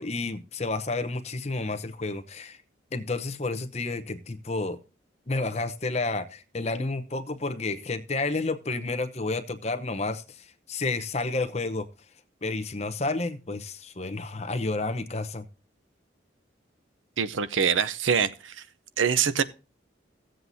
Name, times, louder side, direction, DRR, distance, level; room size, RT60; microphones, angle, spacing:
voice 1, 0.0-2.6 2.9-4.8 5.3-11.9 12.4-15.4, left 3 dB, 35° left, 0.8 m, -30 dB
voice 2, 17.2-18.6 19.0-19.4, right 7 dB, 90° right, 0.6 m, -24 dB
15.5 x 7.7 x 2.7 m
head